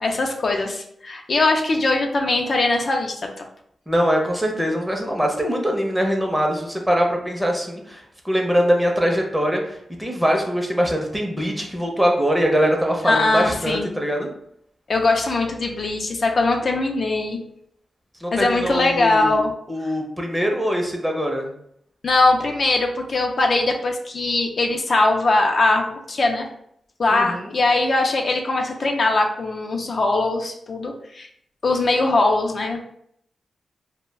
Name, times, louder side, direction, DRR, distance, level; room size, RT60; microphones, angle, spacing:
voice 1, 0.0-3.5 13.0-14.0 14.9-17.4 18.3-19.5 22.0-26.5 27.0-31.3 31.6-32.8, left 2 dB, 55° left, 2 dB, 0.4 m, -21 dB
voice 2, 3.9-14.3 18.2-19.4 19.7-21.5 27.1-27.5, equal, 10° right, 1 dB, 0.6 m, -22 dB
2.2 x 2.1 x 3.3 m, 0.69 s
cardioid pair, 70°, 0 cm